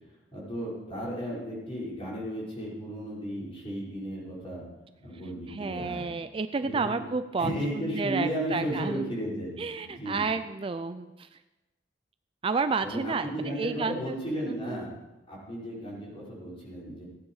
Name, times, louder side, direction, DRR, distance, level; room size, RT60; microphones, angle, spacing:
voice 1, 0.3-4.6 5.0-6.1 6.6-7.0 7.4-9.6 9.8-10.3 12.8-14.9 15.3-17.0, equal, 30° left, -6 dB, 5.4 m, -34 dB
voice 2, 5.5-9.2 9.6-11.4 12.4-14.2 14.4-14.8, right 4 dB, 30° right, 11 dB, 0.4 m, -31 dB
16.0 x 10.0 x 4.8 m, 1.1 s
head